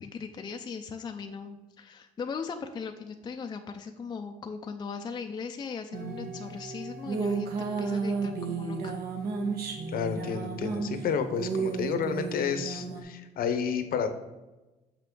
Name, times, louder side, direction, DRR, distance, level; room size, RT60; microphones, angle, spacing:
voice 1, 0.0-8.9, left 5 dB, 25° left, 5 dB, 0.5 m, -38 dB
sound 1, 5.9-13.0, right 4 dB, 65° right, 1.3 m, -33 dB
voice 2, 9.9-14.1, left 6 dB, 60° left, 9 dB, 0.8 m, -30 dB
6.6 x 5.8 x 3.8 m, 1.1 s
cardioid pair, 110°, 17 cm